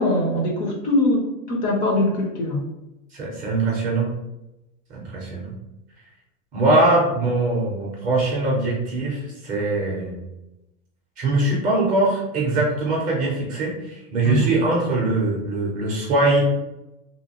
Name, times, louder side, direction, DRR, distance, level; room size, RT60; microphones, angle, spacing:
voice 1, 0.0-2.6 14.2-14.5, left 1 dB, 35° left, 1 dB, 0.5 m, -22 dB
voice 2, 3.1-4.1 4.9-5.5 6.5-10.2 11.2-16.4, right 2 dB, 20° right, -3 dB, 0.5 m, -22 dB
2.8 x 2.6 x 2.8 m, 0.94 s
supercardioid pair, 160°, 38 cm